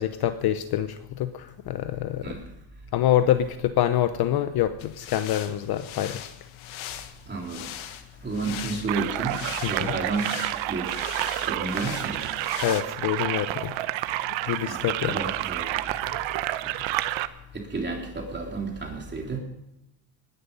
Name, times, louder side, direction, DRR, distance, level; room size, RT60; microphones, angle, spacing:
voice 1, 0.0-2.4 2.9-6.3 9.6-9.9 12.6-13.7 14.4-15.2, left 11 dB, 50° left, 10 dB, 0.8 m, -26 dB
sound 1, 4.8-12.8, left 11 dB, 70° left, 1.6 m, -40 dB
voice 2, 7.3-12.6 14.6-16.7 17.5-19.4, right 3 dB, 20° right, 1 dB, 3.3 m, -33 dB
sound 2, 8.9-17.3, right 15 dB, 65° right, 0.9 m, -29 dB
19.5 x 11.0 x 5.4 m, 0.86 s
cardioid pair, 120°, 50 cm